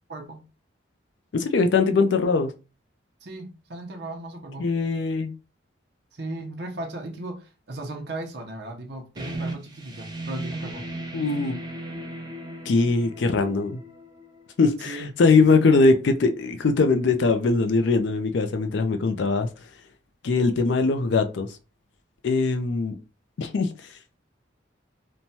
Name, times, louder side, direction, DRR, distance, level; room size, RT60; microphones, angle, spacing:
voice 1, 0.1-0.4 3.2-4.7 6.1-10.9 14.9-15.1, right 2 dB, 60° right, 0.7 m, -36 dB
voice 2, 1.3-2.5 4.6-5.3 11.1-11.6 12.7-13.8 14.6-19.5 20.2-21.5 22.2-23.0 23.4-23.9, left 4 dB, 65° left, 0.4 m, -21 dB
sound 1, 9.2-14.6, right 1 dB, 20° right, 0.5 m, -36 dB
3.0 x 2.2 x 2.7 m
head